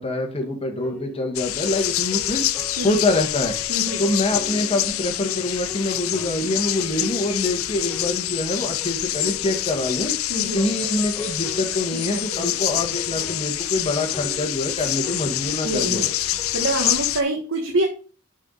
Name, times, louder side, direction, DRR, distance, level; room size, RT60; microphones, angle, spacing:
voice 1, 0.0-2.4 2.8-3.5 4.0-10.1 10.4-16.0, left 2 dB, 30° left, 3 dB, 1.7 m, -25 dB
sound 1, 0.8-16.9, equal, 5° left, 1.2 m, -40 dB
sound 2, 1.4-17.2, left 14 dB, 80° left, 0.5 m, -26 dB
voice 2, 3.7-4.0 10.3-10.7 11.9-12.6 15.6-16.1 16.5-17.9, right 1 dB, 65° right, 2 dB, 1.3 m, -26 dB
7.2 x 5.6 x 4.0 m, 0.37 s
head